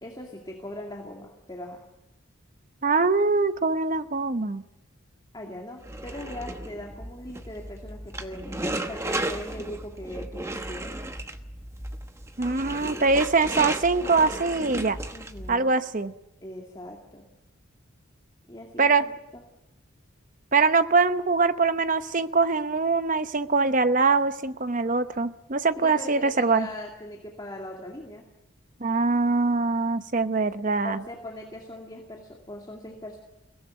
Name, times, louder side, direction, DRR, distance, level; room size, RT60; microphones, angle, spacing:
voice 1, 0.0-1.8 5.3-11.2 15.1-15.7 16.4-17.2 18.5-19.4 25.8-28.2 30.8-33.2, left 1 dB, 20° left, 0 dB, 2.3 m, -40 dB
voice 2, 2.8-4.6 12.4-15.0 15.5-16.1 18.8-19.1 20.5-26.7 28.8-31.0, right 4 dB, 40° right, 11 dB, 0.8 m, -23 dB
sound 1, 5.8-15.6, right 1 dB, 15° right, 1.1 m, -34 dB
23.0 x 17.5 x 9.4 m, 0.97 s
head